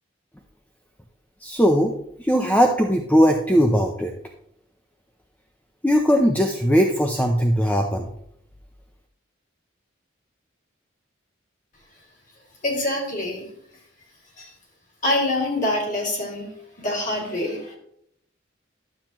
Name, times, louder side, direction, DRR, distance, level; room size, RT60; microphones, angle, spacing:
voice 1, 1.4-1.9 2.2-4.1 5.8-8.1, equal, 10° left, 3 dB, 0.5 m, -19 dB
voice 2, 12.6-13.4 14.4-14.5 15.0-16.5 16.8-17.8, left 1 dB, 40° left, -1 dB, 2.4 m, -25 dB
12.0 x 7.3 x 3.0 m, 0.72 s
head